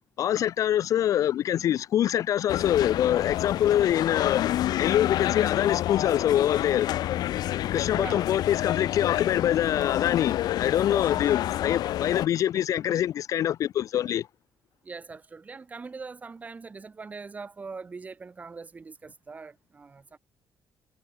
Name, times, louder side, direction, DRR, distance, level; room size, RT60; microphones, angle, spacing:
voice 1, 0.2-4.4 4.8-6.9 7.7-14.3, left 11 dB, 55° left, 0.4 m, -25 dB
sound 1, 2.5-12.3, left 13 dB, 75° left, 1.7 m, -28 dB
voice 2, 7.9-8.3 10.9-11.2 14.8-20.2, right 4 dB, 20° right, 2.4 m, -41 dB
cardioid pair, 160°, 7 cm